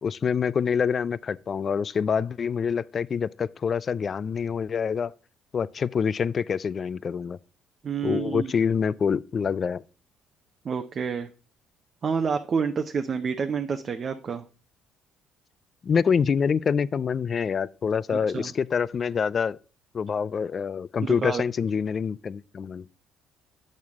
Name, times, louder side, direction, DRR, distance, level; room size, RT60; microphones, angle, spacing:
voice 1, 0.0-5.1 5.5-7.4 8.0-9.8 15.8-19.6 19.9-23.0, left 6 dB, 45° left, 0.4 m, -26 dB
voice 2, 7.8-8.5 10.6-11.3 12.0-14.4 18.1-18.5 21.0-21.4, right 6 dB, 45° right, 0.7 m, -28 dB
8.6 x 6.5 x 3.5 m
supercardioid pair, 85°, 0 cm